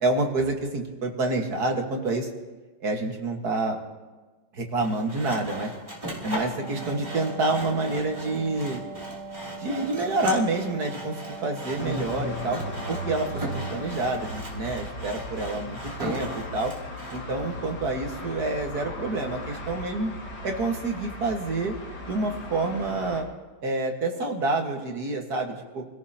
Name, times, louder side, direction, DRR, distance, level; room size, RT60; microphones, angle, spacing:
voice 1, 0.0-2.3 2.8-3.8 4.5-5.7 6.2-8.8 9.6-12.6 12.9-13.4 13.7-16.7 17.1-20.1 20.4-21.8 22.1-23.3 23.6-25.9, right 2 dB, 55° right, 2 dB, 2.0 m, -28 dB
Sawing, 4.8-17.2, right 1 dB, 15° right, 3.1 m, -38 dB
Wind instrument woodwind instrument, 6.4-14.4, right 2 dB, 20° left, 0.8 m, -41 dB
sound 1, 11.8-23.2, left 1 dB, 65° left, 2.7 m, -37 dB
28.0 x 17.0 x 2.9 m, 1.3 s
omnidirectional pair, 2.2 m